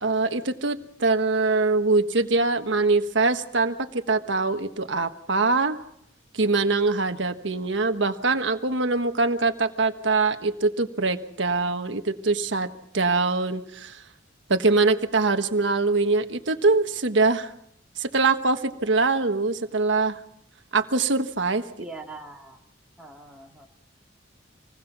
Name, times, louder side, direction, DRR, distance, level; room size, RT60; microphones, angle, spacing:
voice 1, 0.0-5.8 6.3-12.7 12.9-14.0 14.5-17.5 18.0-20.2 20.7-21.7, right 3 dB, 75° right, 7 dB, 1.4 m, -23 dB
voice 2, 21.8-22.6 23.0-23.7, right 2 dB, 5° right, -1 dB, 2.7 m, -41 dB
26.0 x 20.0 x 6.1 m, 0.72 s
head